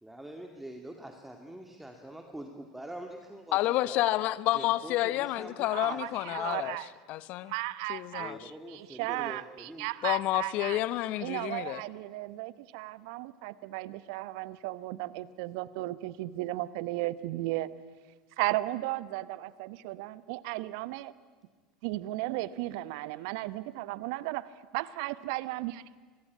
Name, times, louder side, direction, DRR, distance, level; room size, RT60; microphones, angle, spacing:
voice 1, 0.0-3.6 3.8-4.0 4.5-6.7 8.2-9.9, right 1 dB, 5° right, 2.3 m, -45 dB
voice 2, 3.5-6.8 7.1-7.5 7.9-8.4 10.0-11.8, left 16 dB, 55° left, 1.0 m, -29 dB
voice 3, 5.7-6.9 7.4-8.3 8.7-10.8 11.2-17.7 18.4-21.1 21.8-24.5 24.7-26.0, right 18 dB, 60° right, 1.0 m, -35 dB
26.0 x 22.5 x 8.5 m
hypercardioid pair, 80°, 3 cm